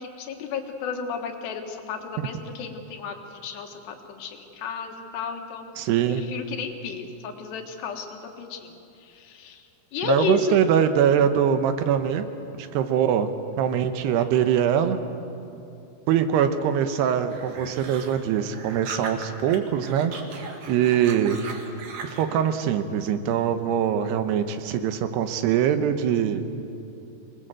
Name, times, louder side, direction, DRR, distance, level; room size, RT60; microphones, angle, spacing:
voice 1, 0.0-5.8 6.1-9.6 9.9-10.6, left 6 dB, 80° left, 4 dB, 3.7 m, -33 dB
voice 2, 5.8-6.2 10.0-12.3 12.6-13.3 13.6-15.0 16.1-20.1 20.7-21.4 22.0-26.4, right 9 dB, 80° right, 9 dB, 3.0 m, -23 dB
sound 1, 17.3-19.6 19.8-22.3, right 4 dB, 55° right, 2.9 m, -39 dB
25.0 x 20.5 x 7.7 m, 2.7 s
omnidirectional pair, 4.9 m